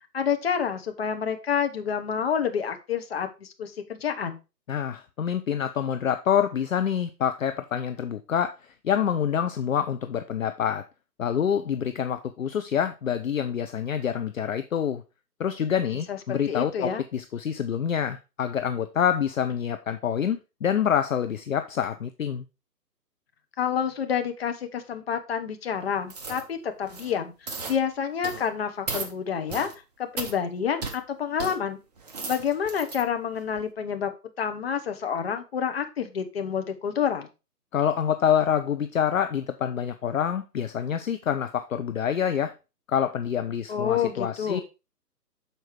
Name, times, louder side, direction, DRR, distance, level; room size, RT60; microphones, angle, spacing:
voice 1, 0.1-4.4 16.1-17.0 23.6-29.7 30.0-31.8 32.3-34.1 34.4-37.3 43.7-44.6, left 7 dB, 40° left, 1.0 m, -28 dB
voice 2, 4.7-10.8 11.2-15.0 15.4-22.4 37.7-42.5 42.9-44.6, left 8 dB, 55° left, 0.6 m, -26 dB
sound 1, 26.1-26.4 26.8-27.1 27.5-27.8 28.2-28.5 28.9-29.1 29.5-29.7 30.2-30.3 30.8-31.0 31.4-31.5 32.0-33.0 33.5-33.6, right 4 dB, 25° right, 0.8 m, -35 dB
6.7 x 4.5 x 4.5 m
figure-of-eight pair, 145°, 48 cm